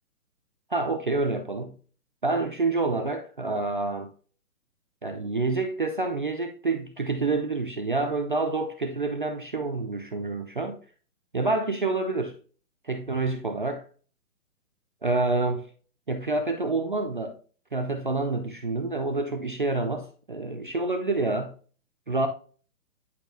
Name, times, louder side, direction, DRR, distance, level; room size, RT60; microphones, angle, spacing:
voice 1, 0.7-1.8 2.2-4.1 5.0-10.8 11.3-12.4 12.8-13.8 15.0-15.7 16.1-17.4 17.7-21.6 22.1-22.3, right 3 dB, 35° right, 0.4 m, -28 dB
9.9 x 4.2 x 2.6 m
hypercardioid pair, 160°, 45 cm